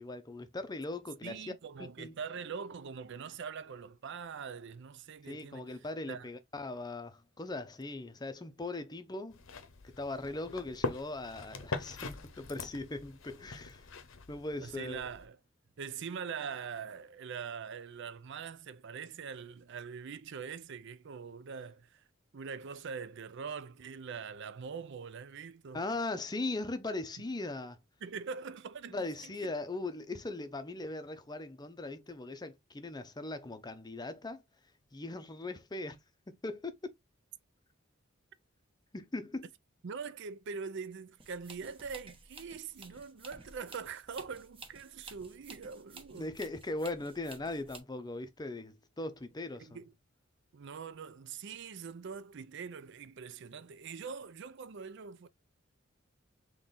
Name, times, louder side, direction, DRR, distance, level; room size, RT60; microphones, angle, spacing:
voice 1, 0.0-1.5 2.0-2.1 5.2-9.4 10.0-13.9 14.3-15.0 25.7-27.8 28.9-34.4 34.9-36.0 36.3-36.9 38.9-39.5 46.1-49.8, left 2 dB, 20° left, 0.6 m, -39 dB
voice 2, 1.2-5.8 6.1-6.3 14.6-15.4 15.8-22.0 22.3-25.9 28.0-29.1 29.4-29.5 39.8-46.3 49.6-49.9 50.5-55.3, right 6 dB, 60° right, 0.5 m, -43 dB
sound 1, 9.3-15.2, left 3 dB, 70° left, 0.8 m, -42 dB
sound 2, 41.2-47.8, right 3 dB, 25° right, 1.0 m, -53 dB
3.8 x 3.0 x 4.0 m
head